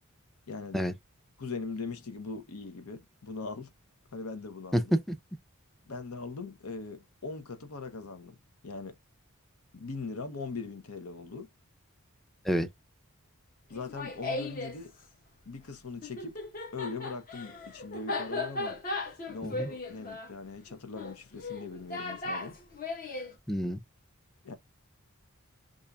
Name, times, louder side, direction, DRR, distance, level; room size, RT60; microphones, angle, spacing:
voice 1, 0.5-0.8 1.4-3.7 4.1-4.9 5.9-8.4 8.6-9.0 9.7-11.5 13.7-14.9 15.5-16.4 16.7-18.8 19.3-22.6 24.4-24.6, left 4 dB, 80° left, 0.8 m, -40 dB
Laughter, 13.7-14.8 16.0-23.3, left 2 dB, 40° left, 0.8 m, -37 dB
voice 2, 23.5-23.8, equal, ahead, 0.4 m, -27 dB
5.3 x 2.5 x 2.2 m
head